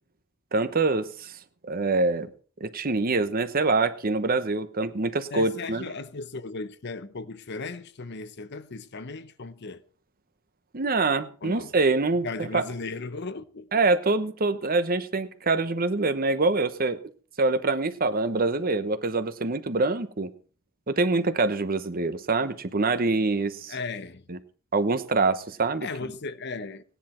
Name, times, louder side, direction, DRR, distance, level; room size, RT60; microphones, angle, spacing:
voice 1, 0.5-1.4 1.6-2.3 2.6-5.9 10.7-12.6 13.7-17.0 17.4-20.3 20.9-23.7 24.3-24.4 24.7-25.9, right 3 dB, 45° right, 1.0 m, -25 dB
voice 2, 5.3-9.8 11.4-11.7 12.2-13.7 23.7-24.3 25.8-26.8, left 3 dB, 55° left, 0.8 m, -36 dB
17.5 x 10.0 x 4.4 m
head